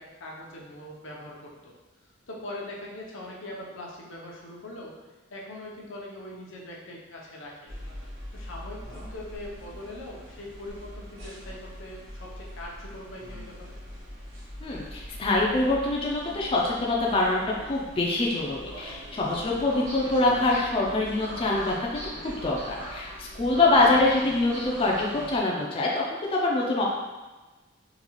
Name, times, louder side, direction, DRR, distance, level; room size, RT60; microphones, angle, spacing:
voice 1, 0.0-1.7 2.3-5.0 5.3-7.7 8.3-13.7 23.6-23.7, left 1 dB, 85° left, -3 dB, 0.7 m, -41 dB
sound 1, 7.7-25.4, equal, 80° right, 1.0 m, -42 dB
voice 2, 14.6-26.8, left 2 dB, 30° left, -3 dB, 0.4 m, -25 dB
3.8 x 2.4 x 3.0 m, 1.2 s
head